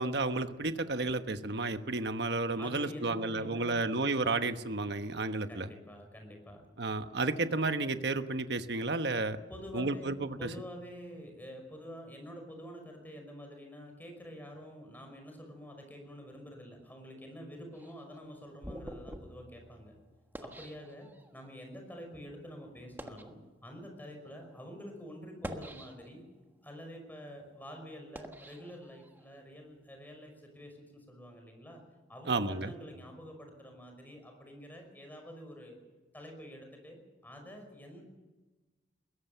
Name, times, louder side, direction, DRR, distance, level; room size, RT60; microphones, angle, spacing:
voice 1, 0.0-5.7 6.8-9.4 9.7-10.5 32.3-32.7, right 3 dB, 60° right, 9 dB, 1.2 m, -32 dB
voice 2, 2.6-3.9 5.5-6.6 9.5-10.1 10.4-19.9 20.4-23.4 23.6-26.2 26.6-31.8 32.1-35.8 36.1-38.0, equal, 10° left, 3 dB, 5.6 m, -47 dB
sound 1, 17.7-21.5 22.2-22.3 22.8-23.4 24.1-24.3 25.2-26.3 26.8-29.4, equal, 10° right, 1.4 m, -47 dB
21.5 x 17.5 x 6.8 m, 1.2 s
head